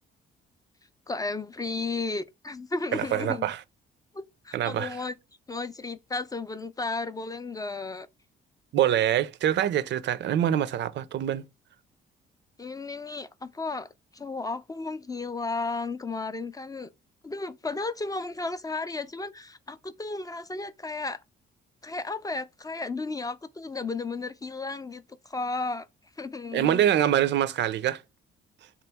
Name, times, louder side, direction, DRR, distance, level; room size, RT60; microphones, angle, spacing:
voice 1, 1.1-3.5 4.1-5.1 5.5-8.1 12.6-16.9 17.2-21.2 21.8-25.9 26.2-26.8, left 3 dB, 20° left, 0.3 m, -34 dB
voice 2, 2.9-3.6 4.5-5.0 8.7-11.4 26.5-28.0, right 11 dB, 65° right, 0.4 m, -25 dB
3.7 x 2.9 x 3.4 m
cardioid pair, 90°, 20 cm